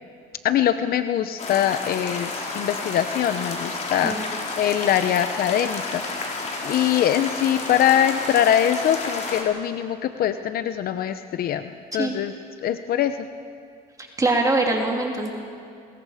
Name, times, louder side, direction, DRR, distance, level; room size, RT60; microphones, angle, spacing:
voice 1, 0.4-6.0 6.6-12.3 12.6-13.2, left 10 dB, 60° left, 10 dB, 0.8 m, -23 dB
sound 1, 1.4-9.4, left 3 dB, 45° left, 4.0 m, -31 dB
voice 2, 14.0-15.3, right 2 dB, 20° right, 0 dB, 2.8 m, -23 dB
28.5 x 21.5 x 5.0 m, 2.4 s
cardioid pair, 110°, 17 cm